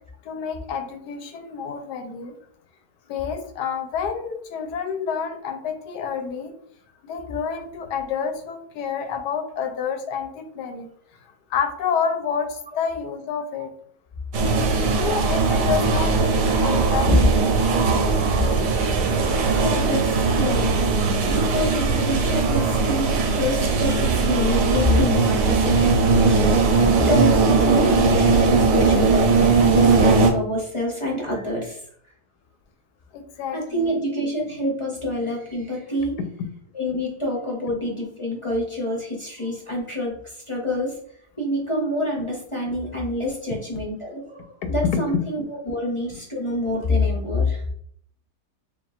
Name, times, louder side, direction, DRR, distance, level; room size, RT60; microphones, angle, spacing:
voice 1, 0.2-2.4 3.1-6.5 7.0-10.9 11.5-13.7 14.9-17.3 33.1-34.0 46.1-46.2, left 6 dB, 85° left, 7 dB, 1.2 m, -29 dB
slow birds and bees, 14.3-30.3, right 4 dB, 85° right, 1.3 m, -19 dB
voice 2, 19.4-20.9 21.3-31.8 33.5-36.2 36.7-41.0 41.4-47.6, left 1 dB, 30° left, -3 dB, 0.6 m, -26 dB
7.0 x 2.4 x 2.4 m, 0.64 s
omnidirectional pair, 1.7 m